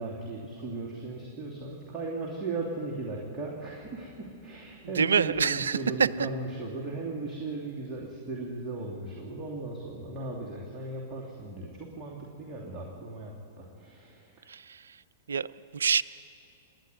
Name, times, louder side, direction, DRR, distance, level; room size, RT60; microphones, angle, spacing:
voice 1, 0.0-14.4, right 3 dB, 20° right, -4 dB, 2.9 m, -37 dB
voice 2, 4.8-6.1 14.5-15.0 15.3-15.5 15.7-16.0, right 6 dB, 70° right, 18 dB, 0.5 m, -26 dB
28.5 x 10.5 x 9.4 m, 2.8 s
figure-of-eight pair, 100°, 0 cm